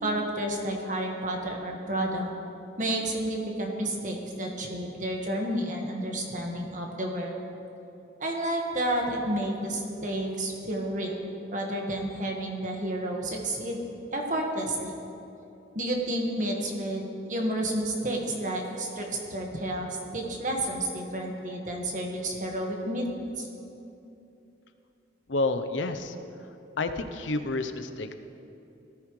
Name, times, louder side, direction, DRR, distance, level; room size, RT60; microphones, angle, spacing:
voice 1, 0.0-2.3 2.8-7.4 8.2-11.2 11.5-13.8 14.1-14.9 15.7-23.1 23.4-23.5, right 1 dB, 45° right, 1 dB, 1.6 m, -30 dB
voice 2, 25.3-26.2 26.8-28.1, left 2 dB, 85° left, 9 dB, 0.8 m, -29 dB
18.0 x 14.0 x 3.2 m, 2.8 s
head